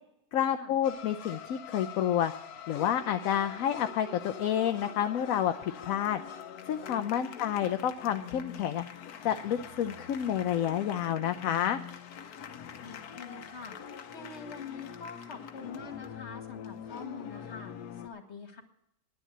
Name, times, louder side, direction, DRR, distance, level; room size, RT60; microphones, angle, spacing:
voice 1, 0.3-2.3 2.7-5.5 5.8-6.2 6.7-8.8 9.2-11.8, left 10 dB, 70° left, 7 dB, 1.0 m, -29 dB
sound 1, 0.8-18.1, left 8 dB, 85° left, 1.4 m, -44 dB
voice 2, 7.2-7.7 12.8-18.6, left 5 dB, 50° left, 5 dB, 2.1 m, -45 dB
10.0 x 10.0 x 7.9 m, 0.80 s
omnidirectional pair, 1.6 m